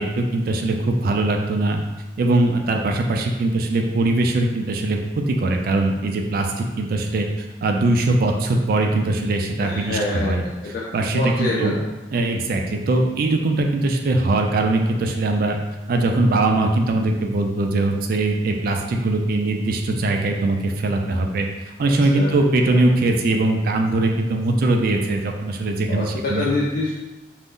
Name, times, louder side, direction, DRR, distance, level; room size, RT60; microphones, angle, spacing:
voice 1, 0.0-1.8 2.2-10.4 10.9-11.8 12.1-15.6 15.9-26.5, right 2 dB, 55° right, 2 dB, 0.3 m, -21 dB
voice 2, 9.6-10.8 11.1-11.8 22.1-22.4 22.7-22.8 25.9-26.9, left 2 dB, 50° left, -4 dB, 0.3 m, -25 dB
2.5 x 2.0 x 3.5 m, 1.1 s
head